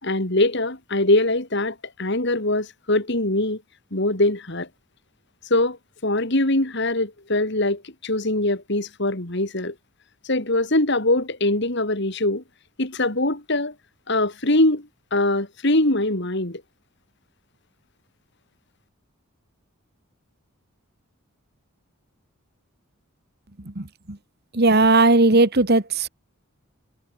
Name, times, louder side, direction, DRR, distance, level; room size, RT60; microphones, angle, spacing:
voice 1, 0.0-3.6 3.9-4.7 5.5-5.8 6.0-9.7 10.2-12.4 12.8-13.7 14.1-16.6, left 1 dB, 50° left, 3.0 m, -22 dB
voice 2, 24.5-26.1, right 2 dB, 45° right, 1.7 m, -17 dB
head